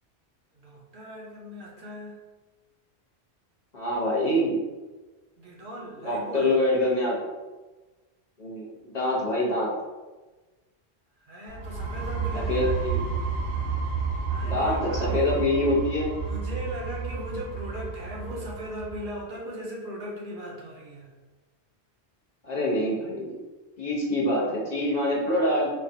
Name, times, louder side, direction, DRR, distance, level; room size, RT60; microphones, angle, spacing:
voice 1, 0.5-2.2 5.4-6.6 11.2-12.8 14.3-15.5 16.1-21.1, equal, 55° right, -3 dB, 0.7 m, -38 dB
voice 2, 3.7-4.6 6.0-7.1 8.4-9.7 12.3-13.0 14.4-16.1 22.4-23.4 23.8-25.7, left 1 dB, 45° left, -6 dB, 0.8 m, -25 dB
sound 1, 11.5-19.1, right 5 dB, 90° right, 0.9 m, -31 dB
4.2 x 2.2 x 2.6 m, 1.2 s
omnidirectional pair, 1.1 m